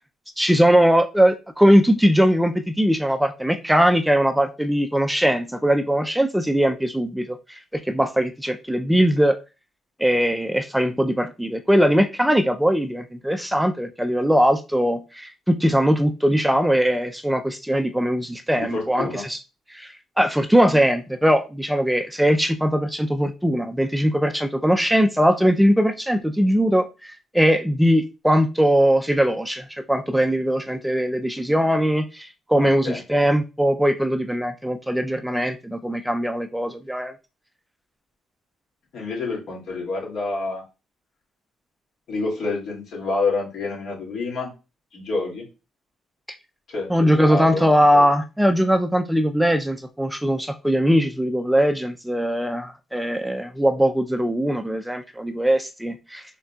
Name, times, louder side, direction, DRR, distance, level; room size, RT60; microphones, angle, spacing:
voice 1, 0.4-9.4 10.0-19.4 19.7-37.1 46.9-56.2, equal, 5° right, 0.4 m, -20 dB
voice 2, 18.6-19.2 32.5-33.0 38.9-40.6 42.1-44.5 44.9-45.4 46.7-48.1, left 3 dB, 70° left, 2.3 m, -28 dB
4.1 x 3.7 x 2.3 m
cardioid pair, 90°, 0 cm